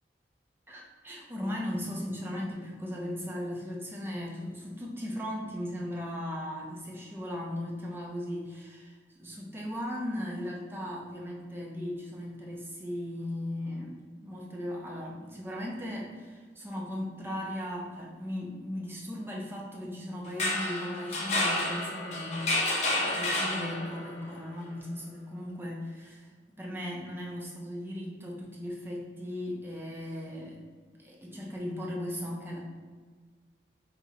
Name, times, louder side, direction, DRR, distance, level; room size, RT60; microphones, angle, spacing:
voice 1, 0.7-22.5 23.0-26.3 26.6-30.6 31.0-32.6, left 1 dB, 10° right, -2 dB, 0.5 m, -37 dB
sound 1, 20.2-24.1, left 1 dB, 40° left, 0.5 m, -30 dB
2.8 x 2.2 x 3.8 m, 1.5 s
head